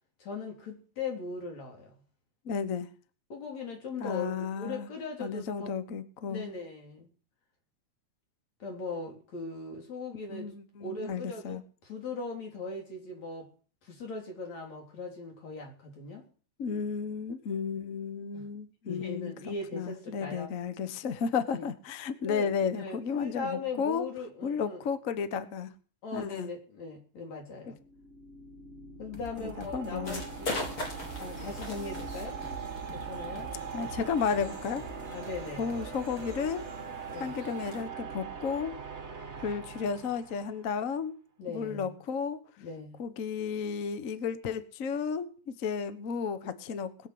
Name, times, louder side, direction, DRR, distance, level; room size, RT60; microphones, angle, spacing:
voice 1, 0.2-1.9 3.3-5.7 6.3-7.1 8.6-10.5 10.8-13.5 13.8-16.3 18.3-18.5 18.9-20.5 21.5-21.6 22.3-24.8 26.0-27.8 29.0-30.8 31.2-32.4 32.9-33.5 35.1-35.7 37.1-37.4 41.4-42.0 42.6-43.0, left 3 dB, 60° left, 1 dB, 4.9 m, -39 dB
voice 2, 2.4-2.9 4.0-4.9 5.2-6.4 10.3-11.6 16.6-24.1 24.4-25.7 26.1-26.5 29.4-30.2 33.7-34.8 35.6-36.6 37.2-38.7 39.4-41.1 41.5-42.4 43.0-45.3 45.6-47.1, left 6 dB, 85° left, 11 dB, 0.7 m, -33 dB
sound 1, 27.7-40.8, right 5 dB, 35° right, 1.2 m, -42 dB
sound 2, 29.1-36.6, right 3 dB, 15° left, 0.9 m, -49 dB
sound 3, 30.0-37.8, left 2 dB, 40° left, 5.1 m, -42 dB
20.5 x 7.4 x 7.8 m, 0.41 s
omnidirectional pair, 3.5 m